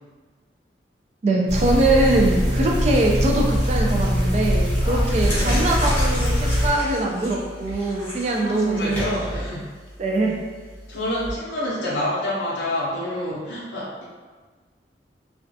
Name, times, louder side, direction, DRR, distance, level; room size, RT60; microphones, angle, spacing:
voice 1, 1.2-9.4 10.0-10.4, right 2 dB, 40° right, 0 dB, 0.3 m, -22 dB
sound 1, 1.5-6.7, equal, 75° right, 1.4 m, -22 dB
voice 2, 4.8-5.6 8.1-9.7 10.9-14.0, left 1 dB, 85° left, -7 dB, 0.5 m, -28 dB
sound 2, 4.8-11.3, equal, 10° left, 0.7 m, -31 dB
2.3 x 2.3 x 2.5 m, 1.4 s
head